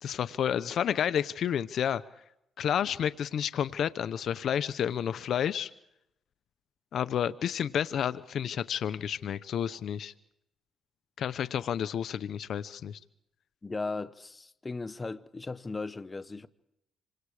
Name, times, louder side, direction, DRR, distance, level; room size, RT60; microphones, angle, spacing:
voice 1, 0.0-2.0 2.6-5.7 6.9-10.1 11.2-13.0, left 9 dB, 65° left, 0.7 m, -30 dB
voice 2, 13.6-16.5, left 3 dB, 25° left, 1.1 m, -37 dB
27.5 x 25.0 x 4.9 m
cardioid pair, 90°, 0 cm